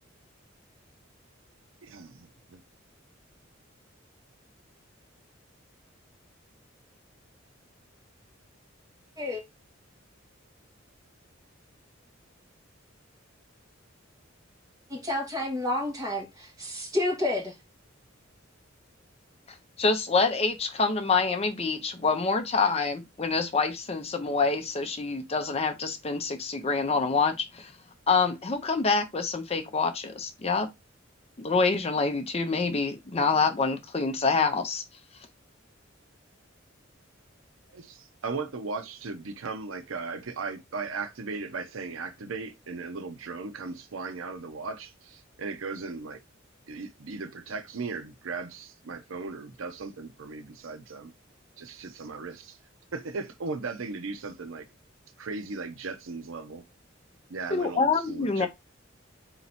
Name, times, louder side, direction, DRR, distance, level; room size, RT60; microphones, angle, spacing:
voice 1, 1.8-2.6 37.7-46.2 46.7-51.1 51.6-52.6 52.9-54.7 55.2-56.6 57.3-58.5, right 4 dB, 85° right, 0.7 m, -37 dB
voice 2, 14.9-17.5, left 1 dB, 20° right, 1.7 m, -30 dB
voice 3, 19.8-27.7 28.1-30.7 31.4-34.8 57.5-58.5, left 4 dB, 30° left, 0.6 m, -26 dB
4.3 x 2.9 x 4.1 m
head